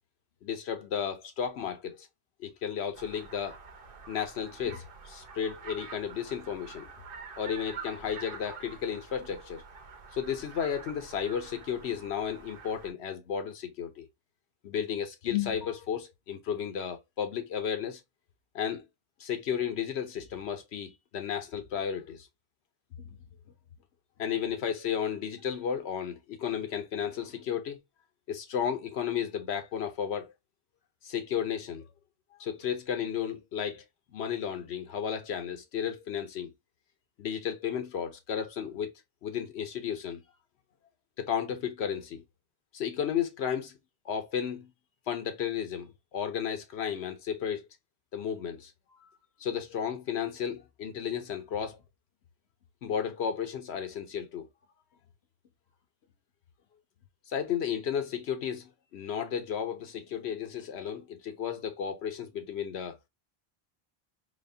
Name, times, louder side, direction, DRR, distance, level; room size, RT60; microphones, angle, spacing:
voice 1, 0.4-2.1 2.4-3.6 4.1-6.9 7.4-9.6 10.1-14.1 14.6-18.0 18.5-18.8 19.2-22.3 23.0-23.2 24.2-27.8 28.3-30.3 31.0-31.9 32.4-33.8 34.1-36.5 37.2-38.9 39.2-40.2 41.2-42.2 42.7-43.8 44.0-44.7 45.1-47.6 48.1-48.7 49.0-49.1 49.4-51.8 52.8-54.5 57.3-63.0, left 8 dB, 80° left, 1.0 m, -33 dB
sound 1, 2.9-12.9, right 5 dB, 60° right, 0.9 m, -47 dB
4.1 x 3.0 x 2.7 m
omnidirectional pair, 1.1 m